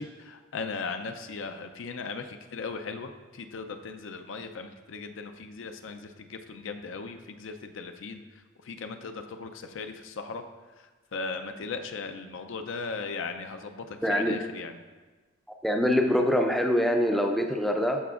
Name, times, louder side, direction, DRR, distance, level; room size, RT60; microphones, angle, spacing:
voice 1, 0.0-8.2 8.6-10.4 10.8-14.8, left 4 dB, 70° left, 7 dB, 0.5 m, -38 dB
voice 2, 14.0-14.4 15.6-18.0, equal, ahead, 2 dB, 0.4 m, -24 dB
12.5 x 5.1 x 2.4 m, 1.3 s
head